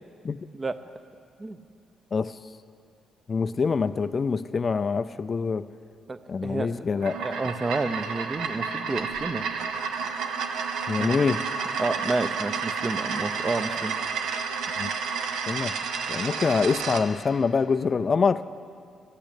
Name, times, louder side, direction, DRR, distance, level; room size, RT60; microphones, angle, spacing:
voice 1, 3.3-5.7 6.3-7.4 10.9-11.4 14.8-14.9 15.5-15.7 16.1-18.5, left 5 dB, 40° left, 13 dB, 0.4 m, -25 dB
voice 2, 6.1-9.5 11.0-11.2 11.8-13.9, right 3 dB, 25° right, 10 dB, 0.7 m, -30 dB
sound 1, 6.9-17.1, right 5 dB, 85° right, 0.8 m, -31 dB
13.0 x 8.8 x 8.4 m, 2.2 s
cardioid pair, 90°, 0 cm